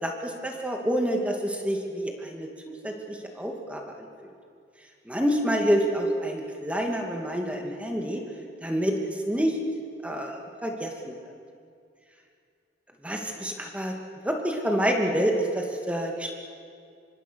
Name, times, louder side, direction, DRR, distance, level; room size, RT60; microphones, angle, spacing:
voice 1, 0.0-3.8 5.1-8.2 8.6-9.6 10.0-11.2 13.0-13.9 14.2-16.3, equal, 5° right, 1 dB, 2.4 m, -28 dB
25.5 x 24.5 x 6.5 m, 2.3 s
head